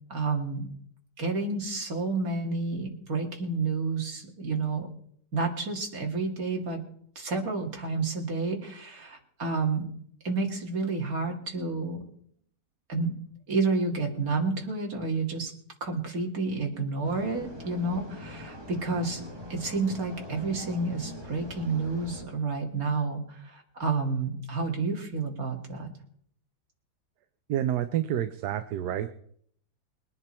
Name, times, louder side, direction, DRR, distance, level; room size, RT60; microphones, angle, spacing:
voice 1, 0.1-0.7 1.2-4.9 5.3-6.8 7.2-9.9 10.2-12.0 12.9-13.1 13.5-15.5 15.8-19.2 19.5-25.9, right 3 dB, 55° right, 1 dB, 2.8 m, -30 dB
sound 1, 17.0-22.2, equal, 15° right, 2.1 m, -43 dB
voice 2, 27.5-29.1, right 11 dB, 70° right, 10 dB, 1.3 m, -28 dB
21.5 x 9.9 x 4.4 m, 0.64 s
omnidirectional pair, 1.8 m